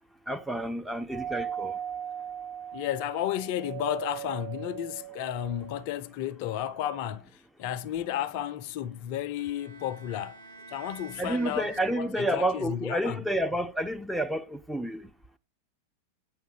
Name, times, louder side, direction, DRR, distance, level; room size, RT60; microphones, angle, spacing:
voice 1, 0.3-1.7 11.2-15.0, right 1 dB, ahead, 0.7 m, -30 dB
Doorbell, 1.1-5.9, right 10 dB, 25° right, 2.4 m, -38 dB
voice 2, 2.7-7.3 7.6-10.4 10.7-13.2, left 11 dB, 45° left, 0.6 m, -33 dB
Bowed string instrument, 9.4-12.5, right 3 dB, 70° right, 1.3 m, -49 dB
9.2 x 7.2 x 3.9 m
figure-of-eight pair, 90°, 0 cm